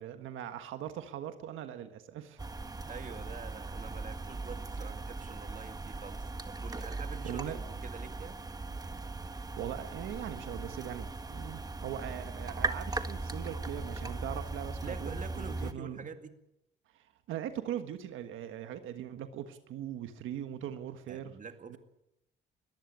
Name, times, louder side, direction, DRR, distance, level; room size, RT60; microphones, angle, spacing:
voice 1, 0.0-2.4 6.8-6.9 7.2-7.6 8.8-8.9 9.6-16.1 16.9-21.3 21.7-21.8, right 10 dB, 85° right, 8 dB, 1.5 m, -40 dB
sound 1, 2.4-15.7, right 3 dB, 20° right, 1.5 m, -39 dB
voice 2, 2.9-8.4 14.8-16.4 21.1-21.8, right 6 dB, 40° right, 8 dB, 2.3 m, -46 dB
21.5 x 14.5 x 8.6 m, 0.85 s
cardioid pair, 90°, 20 cm